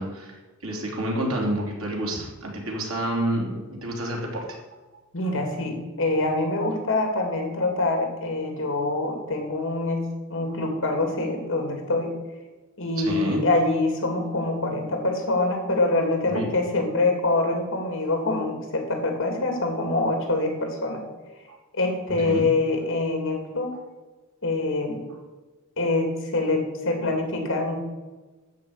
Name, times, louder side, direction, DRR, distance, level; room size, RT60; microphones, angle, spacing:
voice 1, 0.0-4.6 13.0-13.4 16.3-16.5 21.5-21.6 22.2-22.4 23.7-23.8, right 1 dB, 70° right, -1 dB, 3.3 m, -29 dB
voice 2, 5.1-10.0 10.3-12.1 12.8-21.0 21.7-23.8 24.4-25.0 25.8-27.8, left 2 dB, 60° left, 3 dB, 2.8 m, -25 dB
13.0 x 5.4 x 8.8 m, 1.2 s
head